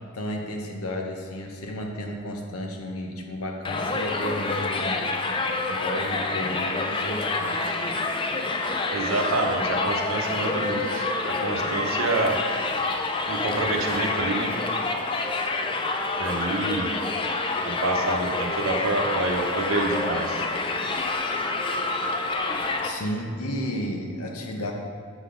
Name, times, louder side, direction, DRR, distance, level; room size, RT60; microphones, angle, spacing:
voice 1, 0.1-5.0 5.7-7.8 22.8-24.7, left 1 dB, 90° left, 2 dB, 0.9 m, -33 dB
Crowd, 3.6-22.9, left 3 dB, 25° left, 0.4 m, -27 dB
voice 2, 8.9-12.4 13.3-14.5 16.2-16.9 17.6-20.4, right 2 dB, 70° right, 2 dB, 0.9 m, -27 dB
7.2 x 4.1 x 5.1 m, 2.2 s
head